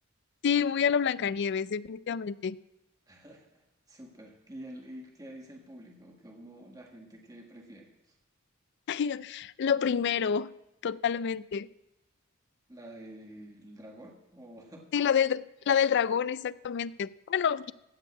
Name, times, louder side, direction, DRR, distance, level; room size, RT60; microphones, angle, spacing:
voice 1, 0.4-2.6 8.9-10.5 10.8-11.7 14.9-17.7, left 7 dB, 55° left, 18 dB, 0.4 m, -28 dB
voice 2, 3.1-8.1 12.7-14.9, right 1 dB, 20° right, 0 dB, 1.7 m, -48 dB
15.5 x 5.4 x 8.4 m, 0.92 s
head